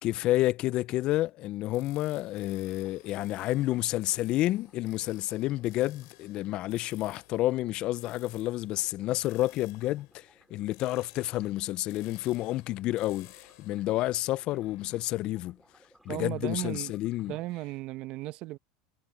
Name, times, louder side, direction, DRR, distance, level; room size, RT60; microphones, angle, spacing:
voice 1, 0.0-15.6 16.1-17.4, left 16 dB, 45° left, 0.3 m, -30 dB
sound 1, 0.8-1.1 2.3-17.4, right 1 dB, 5° right, 4.5 m, -65 dB
sound 2, 1.7-15.0, left 21 dB, 80° left, 2.9 m, -57 dB
voice 2, 16.1-16.9 17.3-18.6, right 17 dB, 55° right, 0.8 m, -35 dB
supercardioid pair, 125°, 2 cm